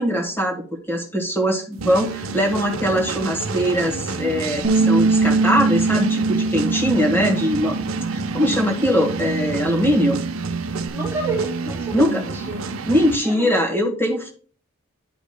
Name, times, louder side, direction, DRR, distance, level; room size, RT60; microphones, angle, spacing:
voice 1, 0.0-7.8 8.1-10.2 11.9-12.2 12.9-14.3, equal, 10° left, 1.4 m, -21 dB
sound 1, 1.8-13.2, right 4 dB, 75° right, 0.7 m, -29 dB
Bass guitar, 4.6-10.9, right 3 dB, 35° right, 0.7 m, -23 dB
voice 2, 10.9-12.6 13.2-13.5, right 3 dB, 10° right, 1.1 m, -29 dB
11.0 x 5.1 x 2.2 m
head